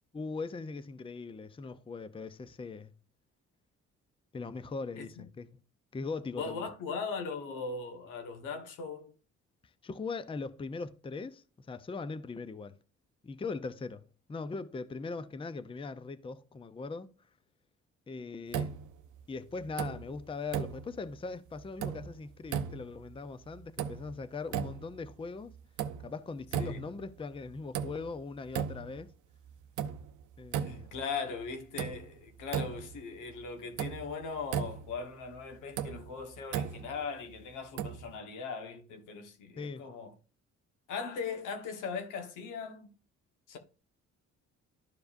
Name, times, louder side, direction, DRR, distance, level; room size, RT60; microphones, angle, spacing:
voice 1, 0.1-2.9 4.3-5.5 5.9-6.7 9.8-12.8 13.2-17.1 18.1-18.8 19.3-25.6 26.0-29.1 30.4-30.9 39.6-39.9, left 4 dB, 20° left, 0.5 m, -40 dB
voice 2, 6.3-9.1 26.6-26.8 30.6-40.1 40.9-42.9 43.5-43.6, left 5 dB, 90° left, 1.3 m, -39 dB
sound 1, 18.5-19.2 19.6-20.2 20.5-21.2 21.6-22.2 22.5-23.1 23.5-24.2 24.5-25.1 25.5-26.2 26.5-27.1 27.5-28.2 28.5-29.1 29.5-31.0 31.4-31.5 31.8-33.0 33.3-33.4 33.8-35.0 35.5-37.0 37.8-38.2, right 8 dB, 75° right, 0.6 m, -36 dB
12.0 x 4.8 x 2.5 m
cardioid pair, 90°, 30 cm